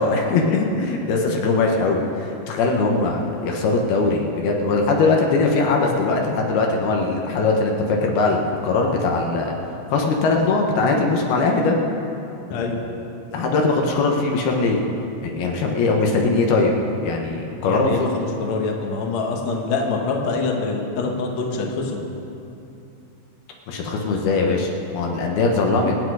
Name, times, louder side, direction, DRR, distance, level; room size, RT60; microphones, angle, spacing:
voice 1, 0.0-9.5 9.9-11.8 13.3-14.8 15.2-16.7 17.0-18.1 23.7-25.9, left 3 dB, 70° left, 1 dB, 3.0 m, -20 dB
voice 2, 12.5-12.8 17.6-22.0, left 4 dB, 55° left, 0 dB, 2.1 m, -25 dB
26.5 x 8.8 x 4.8 m, 2.8 s
omnidirectional pair, 4.8 m